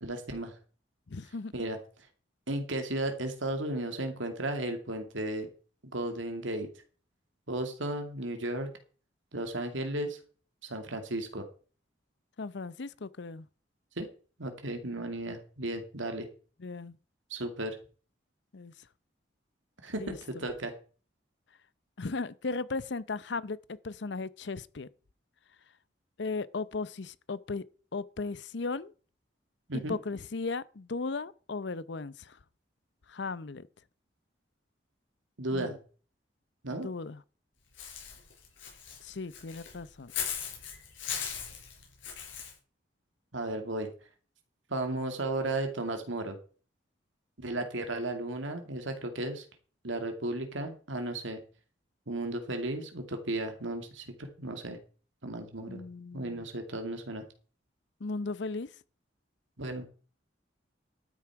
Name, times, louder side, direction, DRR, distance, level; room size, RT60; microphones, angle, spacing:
voice 1, 0.0-0.6 1.5-1.8 2.5-5.5 5.9-6.7 7.5-8.7 9.3-10.2 10.6-11.4 14.0-14.1 14.4-16.3 17.3-17.8 19.8-20.8 29.7-30.0 35.4-35.8 36.6-36.9 43.3-43.9 44.7-46.4 47.4-49.5 49.8-51.4 52.1-54.8 55.2-55.8 56.1-57.2 59.6-59.9, right 1 dB, 85° right, 2.4 m, -34 dB
voice 2, 1.1-1.5 12.4-13.5 16.6-17.0 18.5-18.7 19.9-20.2 22.0-24.9 26.2-27.6 27.9-28.9 29.9-32.4 33.1-33.7 35.5-35.8 36.7-37.2 39.0-40.1 55.7-56.5 58.0-58.7, left 3 dB, 65° left, 0.6 m, -36 dB
Walk footsteps / Bird, 37.8-42.5, left 8 dB, 85° left, 5.4 m, -38 dB
12.5 x 9.6 x 4.7 m
head